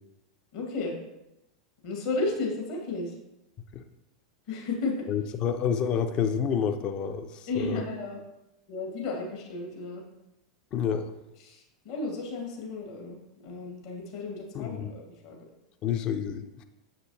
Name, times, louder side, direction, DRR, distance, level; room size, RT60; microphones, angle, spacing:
voice 1, 0.5-0.9 1.8-3.1 4.5-5.1 7.5-8.2 8.7-10.0 11.5-13.2 13.4-15.4, left 3 dB, 50° left, 0 dB, 1.8 m, -33 dB
voice 2, 5.1-7.8 10.7-11.1 14.5-14.9 15.8-16.6, left 7 dB, 35° left, 8 dB, 0.6 m, -29 dB
6.8 x 6.7 x 2.8 m, 0.91 s
figure-of-eight pair, 90°, 3 cm